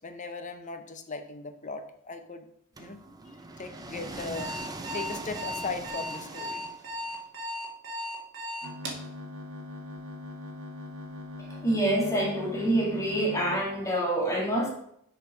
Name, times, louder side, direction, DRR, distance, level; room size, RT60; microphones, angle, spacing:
voice 1, 0.0-2.5 2.8-3.0 3.3-6.7, left 4 dB, 35° left, 7 dB, 0.7 m, -38 dB
sound 1, 2.8-7.2, right 2 dB, 20° right, 0.6 m, -41 dB
Alarm, 4.3-9.1, left 1 dB, 55° right, 1.5 m, -36 dB
sound 2, 8.6-13.6, left 2 dB, 80° right, 1.4 m, -41 dB
voice 2, 11.4-14.7, right 1 dB, 15° left, -3 dB, 1.8 m, -27 dB
6.8 x 4.4 x 5.0 m, 0.71 s
head